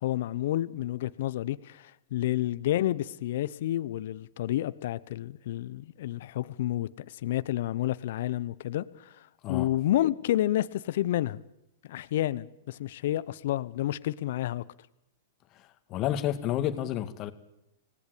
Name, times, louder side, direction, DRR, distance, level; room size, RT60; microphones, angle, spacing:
voice 1, 0.0-9.1 9.5-11.4 11.9-14.6, left 13 dB, 65° left, 0.9 m, -30 dB
voice 2, 15.6-17.3, left 12 dB, 40° left, 2.2 m, -30 dB
26.0 x 19.0 x 8.5 m
hypercardioid pair, 110°, 0 cm